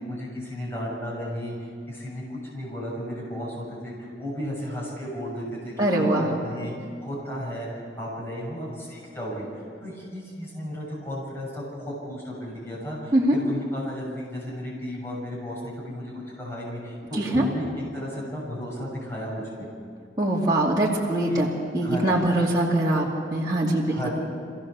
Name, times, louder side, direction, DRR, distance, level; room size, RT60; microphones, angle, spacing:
voice 1, 0.1-19.7 21.3-21.4 21.8-22.0 23.9-24.1, equal, 15° left, -5 dB, 6.7 m, -34 dB
voice 2, 5.8-6.3 13.1-13.4 17.2-17.4 20.2-23.1 23.3-24.1, right 1 dB, 25° right, -6 dB, 2.6 m, -22 dB
26.0 x 16.5 x 7.0 m, 2.3 s
head